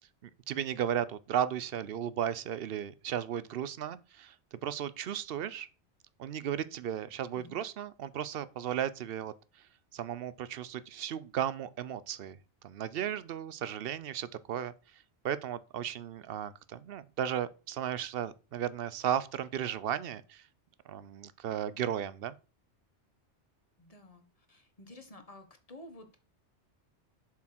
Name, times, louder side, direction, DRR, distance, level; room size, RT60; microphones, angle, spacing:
voice 1, 0.2-5.7 6.2-9.3 9.9-12.4 12.6-20.4 20.9-22.4, right 9 dB, 60° right, 0.7 m, -35 dB
voice 2, 23.8-26.2, left 1 dB, 30° left, 1.4 m, -52 dB
7.2 x 4.6 x 6.0 m
omnidirectional pair, 1.2 m